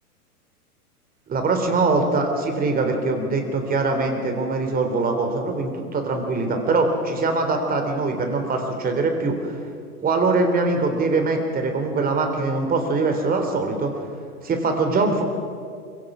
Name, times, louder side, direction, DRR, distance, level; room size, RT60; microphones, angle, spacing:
voice 1, 1.3-9.6 10.0-13.9 14.4-15.2, right 3 dB, 20° right, 5 dB, 3.4 m, -22 dB
26.0 x 23.5 x 6.2 m, 2.3 s
figure-of-eight pair, 110°, 46 cm